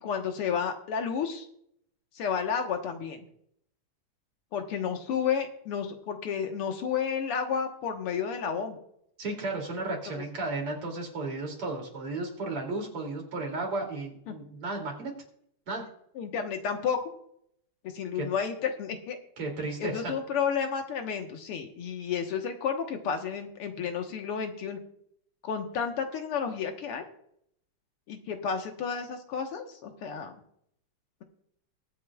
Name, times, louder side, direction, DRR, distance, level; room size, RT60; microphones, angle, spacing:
voice 1, 0.0-1.5 2.2-3.2 4.5-8.8 14.3-14.4 16.2-17.0 17.8-19.2 19.8-24.8 25.4-27.1 28.1-30.4, left 7 dB, 85° left, 4 dB, 2.3 m, -31 dB
voice 2, 9.2-15.1 15.7-15.8 18.1-18.3 19.4-20.0, right 3 dB, 85° right, 1 dB, 3.8 m, -34 dB
22.0 x 8.6 x 2.4 m, 0.69 s
omnidirectional pair, 2.4 m